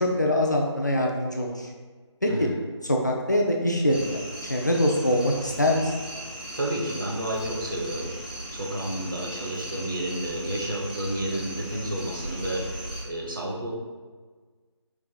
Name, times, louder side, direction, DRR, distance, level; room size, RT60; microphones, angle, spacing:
voice 1, 0.0-1.7 2.2-2.5 2.9-4.2 4.5-5.9, left 1 dB, 40° left, 0 dB, 0.4 m, -23 dB
sound 1, 3.9-13.0, right 1 dB, 20° right, 0.5 m, -37 dB
voice 2, 6.6-13.7, right 1 dB, 45° right, -2 dB, 0.8 m, -31 dB
4.6 x 2.3 x 3.9 m, 1.4 s
figure-of-eight pair, 160°, 16 cm